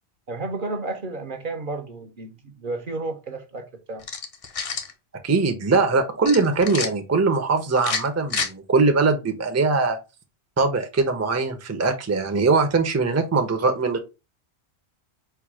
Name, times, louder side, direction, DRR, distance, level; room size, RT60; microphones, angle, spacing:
voice 1, 0.3-4.0, right 3 dB, 55° right, 0.8 m, -32 dB
sound 1, 4.0-4.9 6.2-6.9 7.8-8.5, left 5 dB, 40° left, 0.6 m, -28 dB
voice 2, 5.2-10.0 10.6-14.0, right 4 dB, 20° right, 0.6 m, -21 dB
4.5 x 2.3 x 4.7 m
omnidirectional pair, 1.1 m